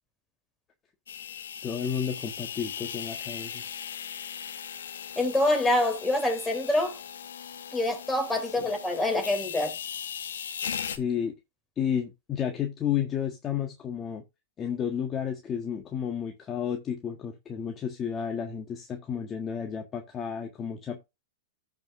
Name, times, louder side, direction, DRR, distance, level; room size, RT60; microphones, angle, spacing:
sound 1, 1.1-11.0, left 8 dB, 80° left, 1.4 m, -38 dB
voice 1, 1.6-3.6 8.4-8.5 11.0-11.3 11.8-14.2 14.6-21.0, left 8 dB, 25° left, 1.5 m, -32 dB
voice 2, 5.1-7.0 7.7-9.7, left 1 dB, 10° left, 3.5 m, -26 dB
14.0 x 5.3 x 2.6 m
hypercardioid pair, 120°, 0 cm